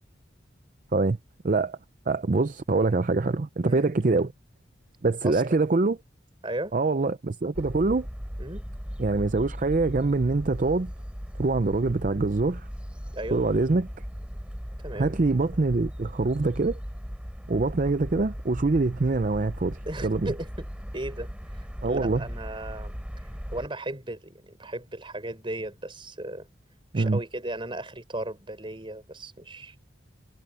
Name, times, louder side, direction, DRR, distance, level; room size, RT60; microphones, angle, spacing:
voice 1, 1.4-1.8 2.1-4.3 5.0-6.0 6.7-8.1 9.0-10.9 11.4-12.7 13.3-13.9 15.0-16.8 17.5-20.3 21.8-22.2 26.9-27.2, right 3 dB, 45° right, 0.5 m, -24 dB
voice 2, 5.2-5.6 6.4-6.7 8.4-8.6 13.1-13.4 14.8-15.2 19.8-20.7 20.9-21.3 21.8-22.9 23.5-26.5 26.9-29.7, right 1 dB, 25° right, 4.6 m, -35 dB
sound 1, 7.5-23.7, equal, 5° right, 4.0 m, -38 dB
head